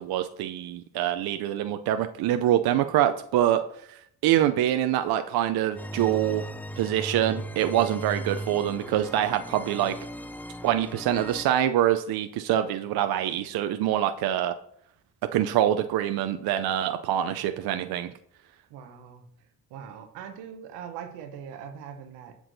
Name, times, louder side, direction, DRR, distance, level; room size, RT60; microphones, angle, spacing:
voice 1, 0.0-3.6 3.9-6.5 6.8-9.9 10.6-14.5 15.3-18.1, right 11 dB, 65° right, 9 dB, 0.5 m, -25 dB
sound 1, 5.8-11.5, right 1 dB, 5° left, 0.3 m, -37 dB
voice 2, 18.7-19.2 19.7-22.4, right 8 dB, 85° right, 7 dB, 0.9 m, -41 dB
7.9 x 6.0 x 2.6 m, 0.69 s
supercardioid pair, 60°, 41 cm